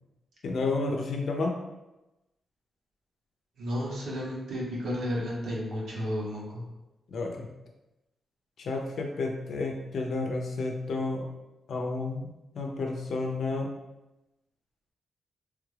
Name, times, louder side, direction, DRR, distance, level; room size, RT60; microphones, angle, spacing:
voice 1, 0.4-1.5 7.1-7.5 8.6-11.3 11.7-12.2 12.5-13.7, left 3 dB, 70° left, 2 dB, 0.5 m, -31 dB
voice 2, 3.6-6.6, equal, 85° right, -5 dB, 1.1 m, -32 dB
3.3 x 2.4 x 3.2 m, 1.0 s
wide cardioid pair, 130°, 0 cm